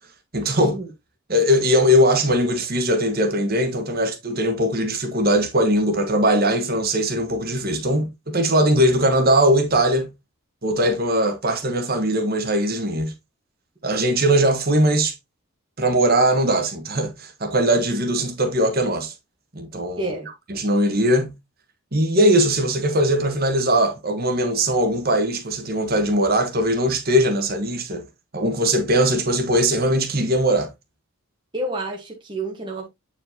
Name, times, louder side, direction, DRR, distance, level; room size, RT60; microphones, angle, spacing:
voice 1, 0.3-0.7 1.3-10.1 10.6-13.1 13.8-15.1 15.8-19.1 19.5-20.1 20.5-21.3 21.9-28.0 28.3-30.7, equal, 40° right, 1.4 m, -20 dB
voice 2, 20.0-20.3 31.5-32.9, right 1 dB, 20° right, 1.3 m, -29 dB
8.7 x 4.8 x 2.8 m
head